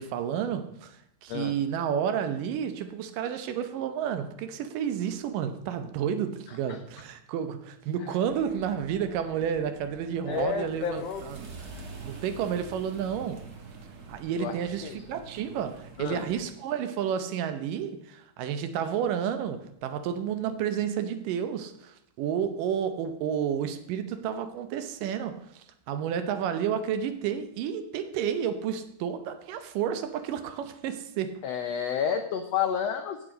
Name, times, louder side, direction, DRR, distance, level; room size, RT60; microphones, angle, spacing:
voice 1, 0.0-11.4 12.0-13.5 14.1-31.4, right 8 dB, 80° right, 2.5 m, -31 dB
sound 1, 8.3-16.4, right 3 dB, 55° right, 1.1 m, -46 dB
voice 2, 10.2-11.2 14.4-14.5 14.8-15.0 16.0-16.3 31.4-33.3, left 7 dB, 90° left, 1.4 m, -30 dB
16.0 x 6.3 x 5.1 m
omnidirectional pair, 3.9 m